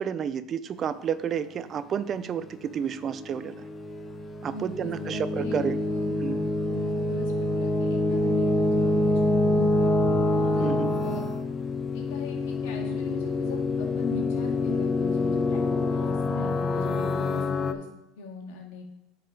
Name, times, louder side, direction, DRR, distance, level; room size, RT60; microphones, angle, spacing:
voice 1, 0.0-3.6 4.4-5.8 6.2-6.4 10.6-10.9, right 8 dB, 35° right, 15 dB, 0.5 m, -30 dB
sound 1, 2.8-17.7, left 2 dB, 25° left, 0.7 m, -26 dB
voice 2, 4.5-6.1 6.7-9.9 10.5-10.7 11.0-11.2 11.9-15.6 15.9-17.9 18.2-18.8, left 3 dB, 75° left, 1 dB, 2.0 m, -41 dB
9.0 x 4.7 x 4.8 m, 0.96 s
supercardioid pair, 100°, 0 cm